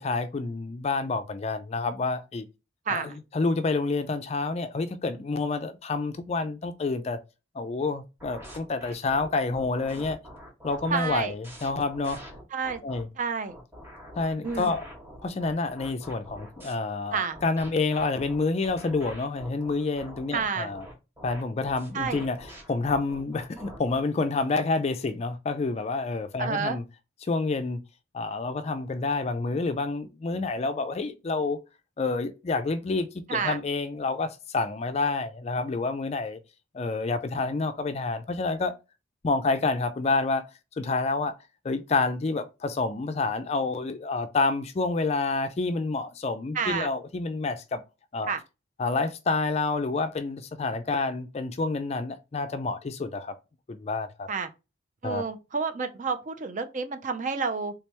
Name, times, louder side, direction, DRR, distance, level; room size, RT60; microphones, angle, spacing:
voice 1, 0.0-2.5 2.9-7.2 7.5-10.2 10.6-12.2 12.8-13.1 14.2-14.8 15.2-20.9 21.2-26.8 27.2-27.8 28.1-31.6 32.0-36.4 36.7-38.7 39.2-40.4 40.8-41.3 41.6-47.8 48.1-48.3 48.8-53.3 53.7-54.3 55.0-55.2, left 3 dB, 30° left, 0.4 m, -28 dB
sound 1, 8.2-13.0 13.5-16.7 17.3-24.0, equal, 10° right, 1.7 m, -45 dB
voice 2, 10.9-11.3 12.5-12.8 13.2-13.6 14.4-14.7 17.1-17.4 20.3-20.7 21.9-22.2 26.4-26.8 33.3-33.6 46.5-46.9 48.2-48.4 54.3-54.5 55.0-57.7, right 5 dB, 40° right, 0.5 m, -29 dB
3.4 x 3.3 x 3.0 m
head